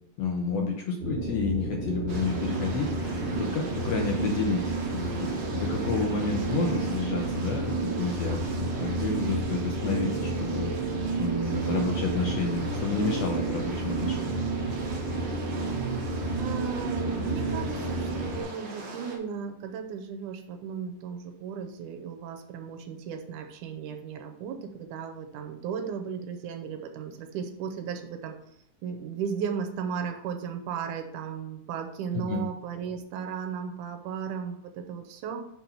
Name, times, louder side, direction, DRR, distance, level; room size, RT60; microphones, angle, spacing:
voice 1, 0.2-4.6 4.9-14.3 32.1-32.4, left 4 dB, 75° left, 1 dB, 1.6 m, -30 dB
sound 1, 1.0-18.4, right 3 dB, 20° right, 2.6 m, -30 dB
sound 2, 2.1-19.2, right 3 dB, 60° right, 1.2 m, -41 dB
voice 2, 16.4-28.4 28.8-35.5, right 6 dB, 80° right, 6 dB, 2.1 m, -35 dB
5.8 x 4.6 x 5.6 m, 0.76 s
omnidirectional pair, 3.7 m